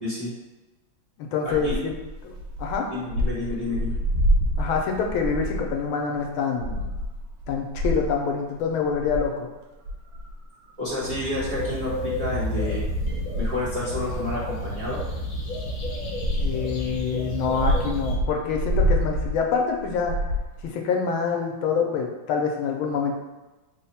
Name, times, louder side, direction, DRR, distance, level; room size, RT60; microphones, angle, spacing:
voice 1, 0.0-0.3 1.4-1.8 2.9-3.9 10.8-12.8 13.4-15.0, left 2 dB, 30° right, -10 dB, 0.7 m, -30 dB
voice 2, 1.2-1.9 2.2-2.3 2.6-2.9 4.6-6.9 7.5-9.5 16.4-20.1 20.6-23.1, left 5 dB, 85° left, 2 dB, 1.4 m, -26 dB
sound 1, 1.5-5.8 6.2-6.3 6.6-8.3 8.8-9.3 9.9-11.0 11.4-17.0 17.5-20.7, equal, 85° right, 1.4 m, -28 dB
sound 2, 11.0-18.2, equal, 70° left, 1.4 m, -31 dB
3.8 x 2.1 x 4.1 m, 1.1 s
omnidirectional pair, 2.2 m